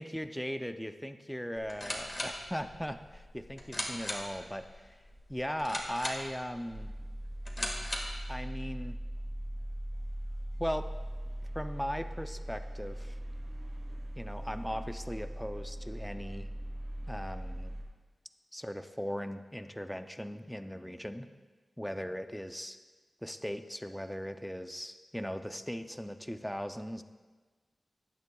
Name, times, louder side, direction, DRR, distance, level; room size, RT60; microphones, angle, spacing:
voice 1, 0.0-5.0 5.3-6.9 8.3-9.0 10.6-10.9 11.5-13.2 14.1-16.5 17.1-17.7 18.5-21.3 21.8-22.8 23.2-27.0, equal, 5° left, 8 dB, 0.5 m, -38 dB
sound 1, 1.6-8.3, left 1 dB, 25° left, 1.7 m, -40 dB
sound 2, 6.7-17.8, right 1 dB, 45° right, 2.9 m, -40 dB
16.0 x 11.0 x 2.3 m, 1.4 s
wide cardioid pair, 120°, 0 cm